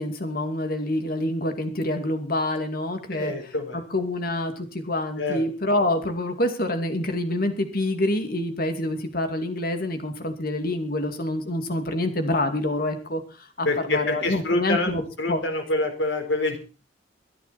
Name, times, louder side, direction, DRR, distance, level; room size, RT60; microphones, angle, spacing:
voice 1, 0.0-3.3 3.9-15.0 15.3-15.4, left 1 dB, 50° left, 7 dB, 2.5 m, -26 dB
voice 2, 3.1-3.8 5.2-5.4 13.6-14.9 15.2-16.6, left 2 dB, 75° left, 5 dB, 4.3 m, -26 dB
22.5 x 10.5 x 4.3 m, 0.34 s
head